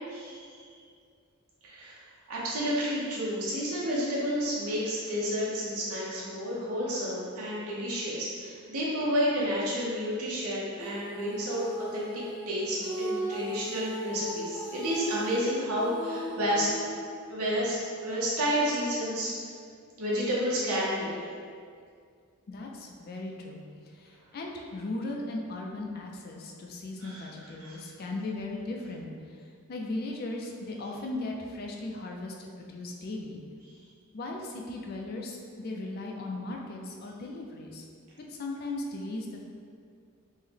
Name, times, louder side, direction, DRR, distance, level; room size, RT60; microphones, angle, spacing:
voice 1, 0.1-0.6 1.6-2.0 2.3-11.7 11.9-12.1 12.5-16.7 17.3-19.3 20.0-21.2 27.0-27.3 27.6-27.8, equal, 90° right, -7 dB, 0.7 m, -30 dB
Female singing, 10.7-17.3, right 1 dB, 20° right, 0.8 m, -38 dB
voice 2, 22.5-23.6 24.0-29.1 29.7-33.4 34.1-37.8 38.3-39.4, left 2 dB, 45° left, 0 dB, 0.3 m, -37 dB
3.6 x 2.1 x 3.3 m, 2.2 s
head